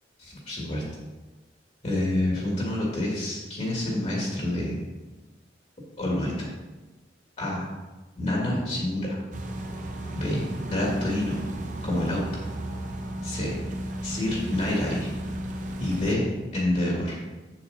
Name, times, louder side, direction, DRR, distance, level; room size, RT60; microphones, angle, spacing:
voice 1, 0.2-0.8 1.8-4.8 6.0-6.5 7.4-7.7 8.2-9.2 10.1-11.4 11.8-12.3 13.2-13.5 14.0-15.1 15.8-16.3 16.5-17.1, left 1 dB, 40° left, -4 dB, 2.0 m, -27 dB
sound 1, 9.3-16.2, right 1 dB, 45° right, 0.8 m, -34 dB
7.9 x 7.0 x 4.1 m, 1.2 s
head